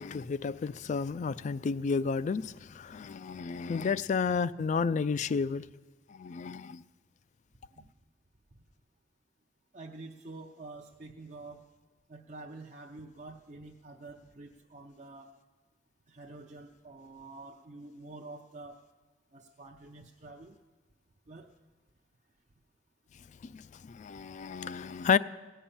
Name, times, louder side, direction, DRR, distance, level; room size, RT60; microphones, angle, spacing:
voice 1, 0.0-5.6 6.1-6.8 23.5-25.2, left 5 dB, 40° left, 0.3 m, -31 dB
voice 2, 9.7-11.6 12.1-15.3 16.1-18.8 19.3-20.6 21.3-21.5, right 2 dB, 45° right, 0.6 m, -48 dB
16.5 x 5.6 x 8.7 m
head